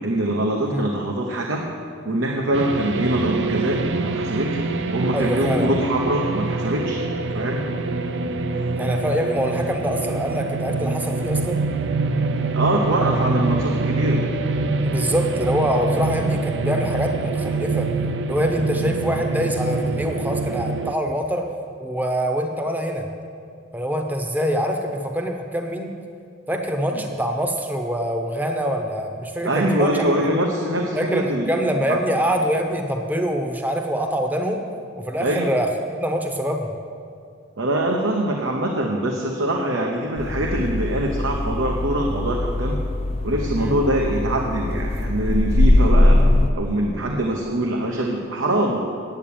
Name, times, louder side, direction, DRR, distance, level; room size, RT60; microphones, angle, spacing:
voice 1, 0.0-1.7 2.0-4.6 4.9-7.0 7.3-7.7 12.5-14.2 26.9-27.0 29.4-32.0 35.2-35.5 37.6-42.8 43.2-46.2 46.5-49.0, right 1 dB, 85° right, 0 dB, 1.0 m, -23 dB
sound 1, 2.5-20.9, right 3 dB, 60° right, 0.5 m, -25 dB
voice 2, 5.1-5.7 8.8-11.6 14.8-17.9 18.3-21.5 21.8-23.1 23.7-25.9 26.5-30.0 31.0-34.6 34.9-36.7 43.6-43.7, equal, 10° right, 4 dB, 0.8 m, -24 dB
sound 2, 40.2-46.5, left 1 dB, 30° left, 0.4 m, -21 dB
9.0 x 8.4 x 8.7 m, 2.3 s
head